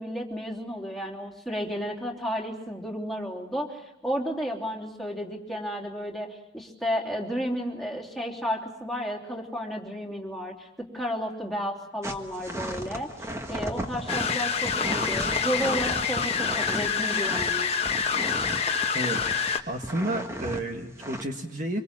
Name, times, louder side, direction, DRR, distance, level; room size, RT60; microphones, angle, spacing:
voice 1, 0.0-13.1 13.5-17.7, equal, ahead, -1 dB, 3.2 m, -32 dB
sound 1, 12.0-19.5 19.8-20.6 21.0-21.2, right 1 dB, 15° right, 1.4 m, -35 dB
sound 2, 14.1-19.6, left 6 dB, 30° left, 1.3 m, -27 dB
voice 2, 18.9-19.3 19.7-21.8, right 1 dB, 40° right, 3 dB, 1.6 m, -31 dB
25.5 x 24.5 x 7.5 m, 0.86 s
head